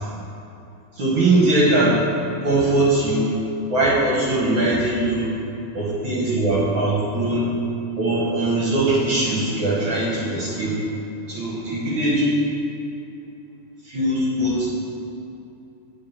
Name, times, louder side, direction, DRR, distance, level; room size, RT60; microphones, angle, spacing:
voice 1, 1.0-2.0 2.4-3.3 3.7-5.3 5.7-7.5 8.0-10.8 11.3-12.3 13.9-14.7, right 2 dB, 60° right, -4 dB, 1.4 m, -21 dB
8.8 x 4.1 x 7.2 m, 2.8 s
omnidirectional pair, 3.6 m